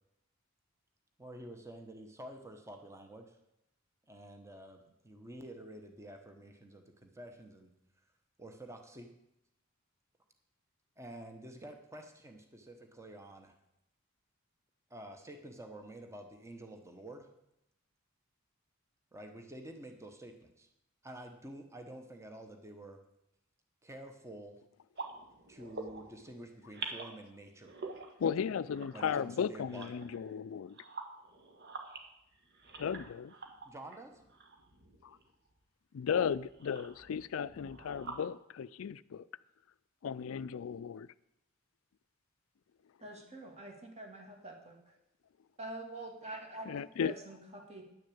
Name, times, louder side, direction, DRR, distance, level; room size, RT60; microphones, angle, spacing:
voice 1, 1.2-3.3 4.1-7.7 8.4-9.1 11.0-13.5 14.9-17.3 19.1-20.7 21.0-23.0 23.8-24.6 25.5-27.7 28.9-30.1 33.6-34.2, right 1 dB, 15° right, 1.1 m, -49 dB
sound 1, 25.0-26.3 26.6-27.2 27.5-30.4 30.7-35.5 36.1-38.3, right 3 dB, 55° right, 1.5 m, -47 dB
voice 2, 28.2-30.8 32.8-33.3 35.0-35.2 35.9-39.3 40.0-41.1 46.7-47.1, left 7 dB, 75° left, 0.4 m, -35 dB
voice 3, 43.0-44.8 45.6-47.8, right 1 dB, 30° right, 2.3 m, -46 dB
10.5 x 6.5 x 8.5 m
head